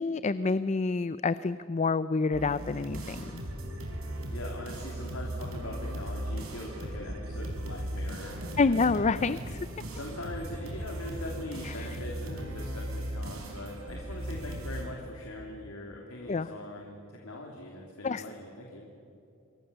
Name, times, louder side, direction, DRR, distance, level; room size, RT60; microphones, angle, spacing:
voice 1, 0.0-3.4 8.6-9.6 11.6-11.9 16.3-16.5 18.0-18.2, left 4 dB, 35° left, 15 dB, 0.5 m, -28 dB
sound 1, 2.3-14.8, right 1 dB, 75° right, 4.7 m, -37 dB
voice 2, 4.3-9.3 9.9-18.9, left 1 dB, 85° left, 0 dB, 3.0 m, -42 dB
27.5 x 22.5 x 6.9 m, 2.7 s
head